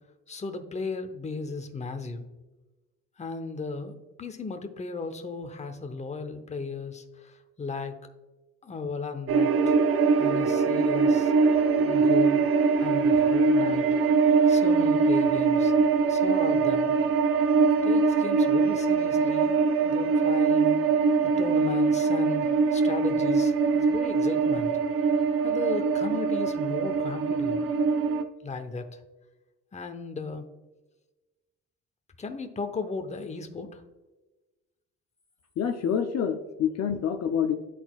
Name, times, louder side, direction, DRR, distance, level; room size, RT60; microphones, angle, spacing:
voice 1, 0.3-2.3 3.2-8.1 8.6-9.8 10.2-11.3 11.8-12.4 12.8-13.9 14.5-15.7 16.1-16.9 17.8-19.6 19.8-20.8 21.2-24.7 25.4-27.6 28.4-29.0 29.7-30.5 32.2-33.8, left 4 dB, 25° left, 8 dB, 0.8 m, -36 dB
sound 1, 9.3-28.2, right 4 dB, 50° right, 0.6 m, -23 dB
voice 2, 35.6-37.6, left 8 dB, 60° left, 6 dB, 0.6 m, -27 dB
11.0 x 4.1 x 2.3 m, 1.1 s
cardioid pair, 90°, 30 cm